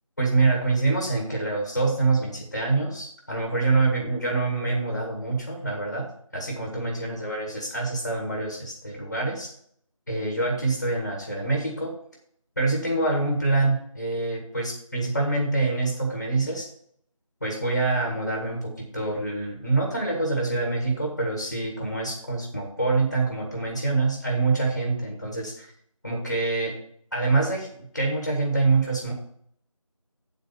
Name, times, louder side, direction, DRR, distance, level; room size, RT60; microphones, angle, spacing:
voice 1, 0.2-6.0 6.3-9.5 10.1-11.9 12.6-16.6 17.4-25.7 26.0-26.7 27.1-29.1, right 3 dB, 30° left, 0 dB, 1.7 m, -25 dB
8.9 x 4.0 x 7.0 m, 0.65 s
figure-of-eight pair, 175°, 18 cm